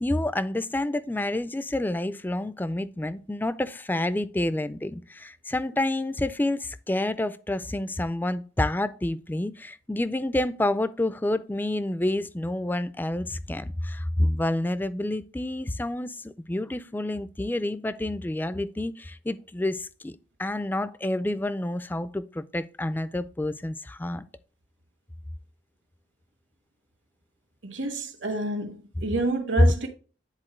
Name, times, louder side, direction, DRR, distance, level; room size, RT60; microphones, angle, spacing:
voice 1, 0.0-24.2 29.6-29.7, left 1 dB, 10° left, 0.3 m, -28 dB
voice 2, 27.6-29.9, right 2 dB, 75° right, 1.6 m, -29 dB
9.9 x 4.2 x 3.1 m
head